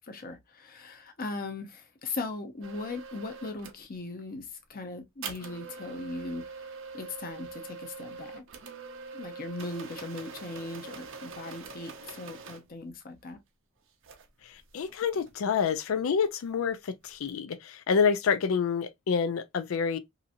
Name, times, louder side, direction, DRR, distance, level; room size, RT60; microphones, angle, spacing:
voice 1, 0.0-6.4 6.9-8.4 9.1-13.4, left 3 dB, 45° left, 0.7 m, -39 dB
sound 1, 2.6-3.8 5.2-12.7 14.0-14.3 14.5-15.8 17.0-17.4, right 5 dB, 65° right, 0.6 m, -44 dB
voice 2, 14.7-20.0, left 6 dB, 70° left, 0.4 m, -27 dB
2.8 x 2.6 x 2.5 m
head